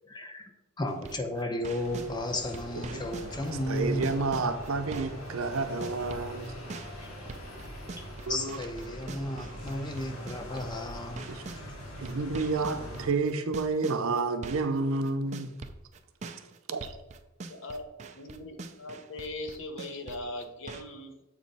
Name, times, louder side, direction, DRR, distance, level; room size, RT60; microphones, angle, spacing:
voice 1, 0.0-4.1 7.0-7.1 8.0-11.3 11.7-11.8, left 1 dB, 20° left, 0.6 m, -34 dB
sound 1, 0.9-2.1 2.5-5.3 5.5-11.6 12.0-20.8, right 3 dB, 35° right, 0.4 m, -43 dB
sound 2, 1.7-13.1, equal, 80° left, 2.4 m, -42 dB
voice 2, 3.7-6.5 8.3-8.6 11.3-11.4 12.0-15.5 16.7-17.0, right 3 dB, 80° right, 0.6 m, -30 dB
voice 3, 17.5-21.1, left 1 dB, 60° left, 0.9 m, -40 dB
7.4 x 3.1 x 5.5 m
head